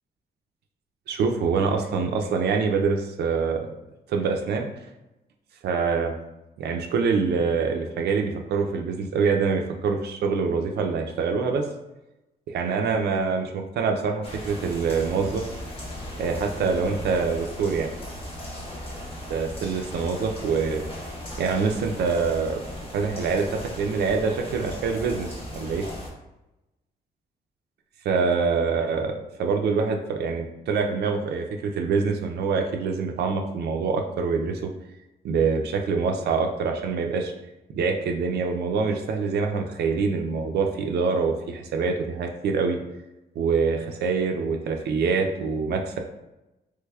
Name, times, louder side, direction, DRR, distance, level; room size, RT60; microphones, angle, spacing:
voice 1, 1.1-3.6 4.1-4.7 5.6-6.1 6.6-11.7 12.5-15.4 16.2-17.9 19.3-20.9 21.4-22.6 22.9-25.3 25.5-25.9 28.0-34.7 35.2-37.3 37.7-42.8 43.4-46.0, right 5 dB, 75° right, 3 dB, 0.4 m, -25 dB
sound 1, 14.2-26.1, left 1 dB, 35° left, 0.8 m, -37 dB
3.3 x 3.1 x 2.2 m, 0.96 s
cardioid pair, 130°, 17 cm